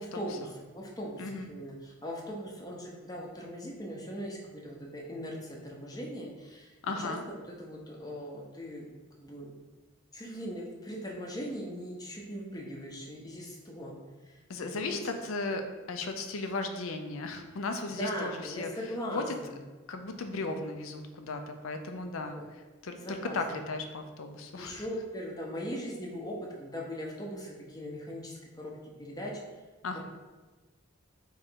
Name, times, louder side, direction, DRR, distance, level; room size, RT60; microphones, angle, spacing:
voice 1, 0.0-6.7 7.0-7.1 7.6-8.8 9.2-9.5 10.1-14.0 14.2-14.4 14.7-15.0 17.9-19.5 22.3-22.5 23.0-23.4 24.6-28.7 29.0-29.4 29.9-30.0, equal, 20° left, -1 dB, 0.6 m, -39 dB
voice 2, 1.2-1.5 6.8-7.2 14.5-18.7 19.1-19.3 19.9-22.4 22.8-24.8 29.8-30.0, left 3 dB, 75° left, 6 dB, 0.5 m, -36 dB
3.6 x 3.1 x 4.4 m, 1.2 s
head